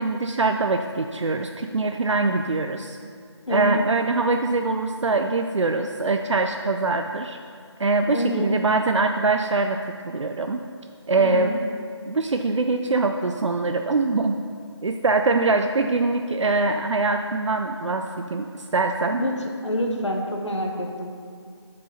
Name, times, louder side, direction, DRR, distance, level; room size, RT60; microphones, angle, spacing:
voice 1, 0.0-3.0 3.5-7.4 7.8-10.6 11.1-11.5 12.1-14.4 14.8-18.5 18.7-19.2, right 3 dB, 85° right, 5 dB, 0.4 m, -23 dB
voice 2, 3.5-3.9 8.1-8.5 11.2-11.6 19.2-19.3 19.6-21.1, equal, 75° left, 1 dB, 1.2 m, -27 dB
8.1 x 5.4 x 3.9 m, 2.2 s
figure-of-eight pair, 170°, 15 cm